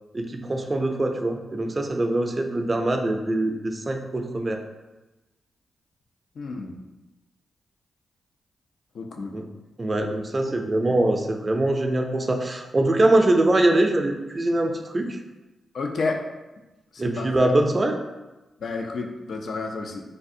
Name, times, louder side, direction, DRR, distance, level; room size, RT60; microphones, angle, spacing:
voice 1, 0.1-4.6 9.3-9.4 9.8-15.2 17.0-18.0, right 1 dB, 40° right, 4 dB, 0.4 m, -23 dB
voice 2, 6.4-6.7 9.0-9.3 10.4-10.5 15.7-16.2 17.2-17.5 18.6-20.0, left 3 dB, 70° left, 2 dB, 0.4 m, -30 dB
3.3 x 2.4 x 2.6 m, 1.1 s
supercardioid pair, 50°, 0 cm